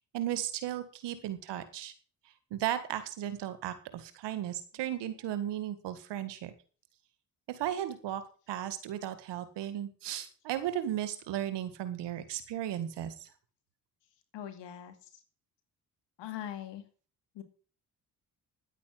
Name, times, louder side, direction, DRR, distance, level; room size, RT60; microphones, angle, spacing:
voice 1, 0.1-1.9 2.5-6.5 7.5-8.2 8.5-13.3, right 11 dB, 85° right, 12 dB, 1.9 m, -35 dB
voice 2, 14.3-15.2 16.2-16.8 17.3-17.4, left 11 dB, 85° left, 8 dB, 2.5 m, -42 dB
10.5 x 8.6 x 7.6 m, 0.39 s
supercardioid pair, 60°, 41 cm